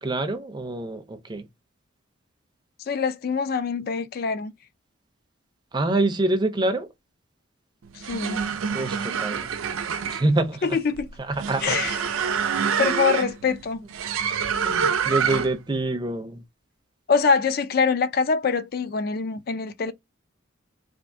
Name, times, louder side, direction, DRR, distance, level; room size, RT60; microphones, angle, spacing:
voice 1, 0.0-1.5 5.7-6.9 8.7-9.5 10.1-10.7 11.3-11.8 12.7-13.0 14.6-16.4, right 2 dB, 20° right, 0.4 m, -26 dB
voice 2, 2.9-4.5 7.9-8.4 10.6-11.1 11.6-12.0 12.8-13.8 17.1-19.9, left 5 dB, 45° left, 0.4 m, -24 dB
sound 1, 7.9-15.7, right 6 dB, 80° right, 0.4 m, -27 dB
3.5 x 2.4 x 2.5 m
head